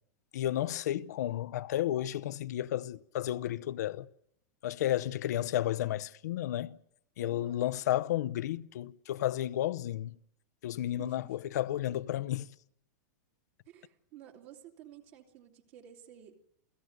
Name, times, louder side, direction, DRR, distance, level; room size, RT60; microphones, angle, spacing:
voice 1, 0.3-4.1 4.6-6.8 7.2-10.2 10.6-12.5, left 13 dB, 65° left, 0.8 m, -32 dB
voice 2, 7.2-7.6 11.0-11.2 13.7-16.3, right 10 dB, 45° right, 2.8 m, -52 dB
29.0 x 17.0 x 6.6 m
supercardioid pair, 165°, 10 cm